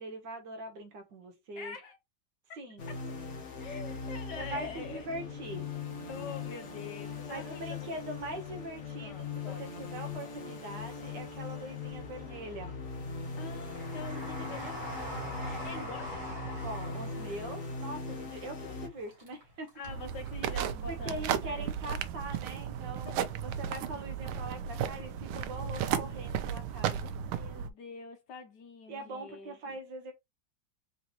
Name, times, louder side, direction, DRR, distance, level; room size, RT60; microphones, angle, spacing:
voice 1, 0.0-1.8 2.6-2.8 4.4-5.7 7.3-12.7 16.6-19.7 20.9-27.1 28.9-30.1, right 1 dB, 65° right, 1.6 m, -42 dB
voice 2, 1.6-2.0 3.6-5.1 6.1-7.9 9.0-9.8 13.3-14.9 15.4-16.2 19.7-21.7 23.1-23.2 27.3-29.8, left 5 dB, 65° left, 1.2 m, -45 dB
sound 1, 2.8-18.9, left 4 dB, 50° left, 1.0 m, -40 dB
Train, 8.0-9.3 9.7-10.7 11.2-20.0 20.2-20.3, equal, 40° right, 2.0 m, -44 dB
sound 2, 19.8-27.7, right 8 dB, 90° right, 1.4 m, -34 dB
3.9 x 3.9 x 2.9 m
omnidirectional pair, 2.2 m